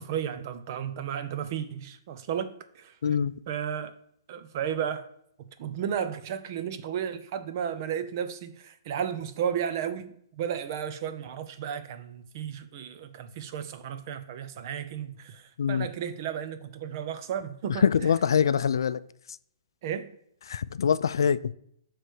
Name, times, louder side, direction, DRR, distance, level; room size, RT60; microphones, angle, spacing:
voice 1, 0.0-3.0 3.5-3.9 4.3-5.1 5.4-17.9 19.8-20.2, right 8 dB, 45° right, 0.7 m, -33 dB
voice 2, 3.0-3.3 15.6-15.9 17.8-19.0 20.5-21.5, left 7 dB, 80° left, 0.4 m, -24 dB
7.9 x 3.3 x 6.1 m
hypercardioid pair, 145°, 2 cm